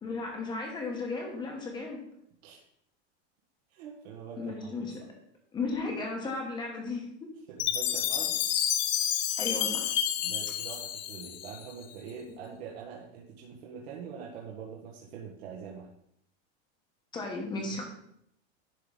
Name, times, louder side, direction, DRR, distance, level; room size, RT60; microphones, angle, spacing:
voice 1, 0.0-2.0 4.4-4.9 5.5-7.1 9.4-9.9 17.1-17.8, left 3 dB, 15° left, 1 dB, 1.1 m, -35 dB
voice 2, 3.7-5.1 7.5-8.4 10.2-15.9 17.7-17.8, right 7 dB, 65° right, -3 dB, 1.4 m, -44 dB
Chime, 7.6-11.8, left 10 dB, 40° left, 0.5 m, -30 dB
10.5 x 3.8 x 3.8 m, 0.74 s
supercardioid pair, 170°, 34 cm